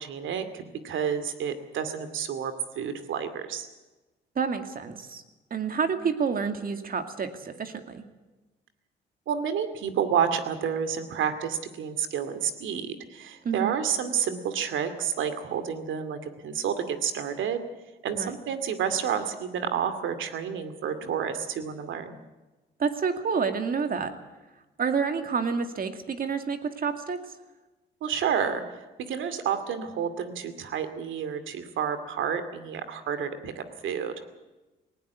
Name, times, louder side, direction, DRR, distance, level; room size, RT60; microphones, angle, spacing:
voice 1, 0.0-3.7 9.3-17.6 18.0-22.2 28.0-28.6 29.0-34.2, right 8 dB, 75° right, 10 dB, 2.4 m, -30 dB
voice 2, 4.4-5.2 5.5-8.0 13.4-13.8 18.1-18.3 22.8-24.1 24.8-27.2, right 6 dB, 45° right, 8 dB, 2.3 m, -29 dB
19.0 x 17.5 x 8.2 m, 1.1 s
cardioid pair, 90°, 20 cm